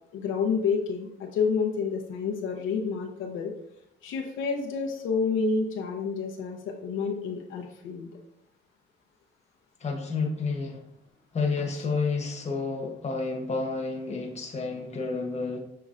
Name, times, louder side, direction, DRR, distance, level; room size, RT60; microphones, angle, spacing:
voice 1, 0.1-3.5 4.0-8.1, left 5 dB, 80° left, 1 dB, 0.7 m, -29 dB
voice 2, 9.8-10.8 11.3-15.6, left 4 dB, 35° left, 2 dB, 1.0 m, -30 dB
6.6 x 3.0 x 2.5 m, 0.78 s
cardioid pair, 90°, 20 cm